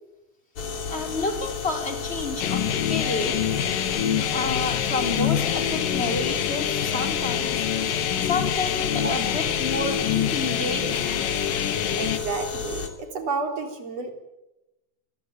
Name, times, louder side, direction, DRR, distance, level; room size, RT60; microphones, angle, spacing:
sound 1, 0.6-12.9, left 6 dB, 45° left, 3.5 m, -33 dB
voice 1, 0.9-3.5 4.3-7.6 8.2-11.7, left 3 dB, 20° left, 5 dB, 4.0 m, -30 dB
sound 2, 2.4-12.2, left 9 dB, 80° left, 3.2 m, -26 dB
voice 2, 12.0-14.1, right 4 dB, 50° right, 5 dB, 4.6 m, -30 dB
26.5 x 21.5 x 9.2 m, 0.97 s
omnidirectional pair, 3.8 m